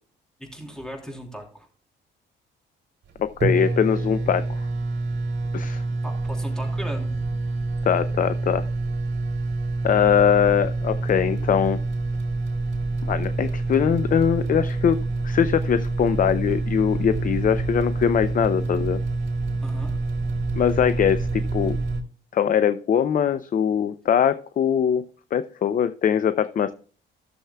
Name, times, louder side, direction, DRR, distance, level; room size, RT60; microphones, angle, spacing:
voice 1, 0.4-1.7 6.0-7.1 19.6-20.0, equal, 5° left, 1 dB, 3.2 m, -37 dB
sound 1, 3.1-3.2 3.4-22.0, right 3 dB, 60° right, 2.9 m, -27 dB
voice 2, 3.2-4.6 5.5-5.8 7.9-8.6 9.8-11.8 13.0-15.0 15.2-19.0 20.6-21.8 22.3-25.0 25.3-26.7, left 8 dB, 45° left, 13 dB, 0.5 m, -22 dB
15.0 x 7.0 x 2.2 m, 0.40 s
cardioid pair, 90°, 20 cm